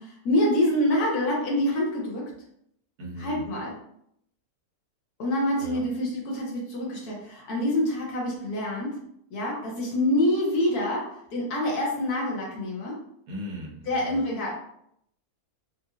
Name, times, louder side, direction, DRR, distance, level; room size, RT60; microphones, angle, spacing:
voice 1, 0.0-2.3 3.2-3.8 5.2-9.0 9.3-13.0 13.9-14.5, left 1 dB, 75° left, -3 dB, 1.5 m, -26 dB
voice 2, 3.0-3.5 5.5-5.8 13.3-14.2, equal, 80° right, -1 dB, 1.4 m, -38 dB
4.2 x 2.6 x 2.4 m, 0.72 s
omnidirectional pair, 1.6 m